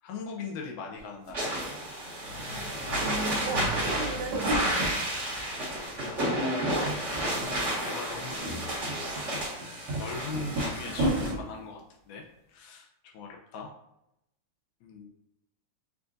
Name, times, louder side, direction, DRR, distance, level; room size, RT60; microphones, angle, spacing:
voice 1, 0.0-1.5 6.0-8.7 10.0-12.2 12.5-12.9 13.1-13.7 14.8-15.1, left 4 dB, 80° left, 1 dB, 1.9 m, -41 dB
sound 1, 1.0-1.1 1.3-2.4 2.7-5.0 5.4-6.1 6.4-7.2 7.5-7.6 8.1-11.4, right 1 dB, 65° right, 1.4 m, -33 dB
sound 2, 1.3-11.3, right 1 dB, 40° right, 1.0 m, -31 dB
sound 3, 2.2-7.7, left 1 dB, 35° left, 1.3 m, -43 dB
voice 2, 3.0-5.1, right 5 dB, 85° right, 5 dB, 2.3 m, -36 dB
6.8 x 2.5 x 2.5 m, 0.84 s
omnidirectional pair, 3.9 m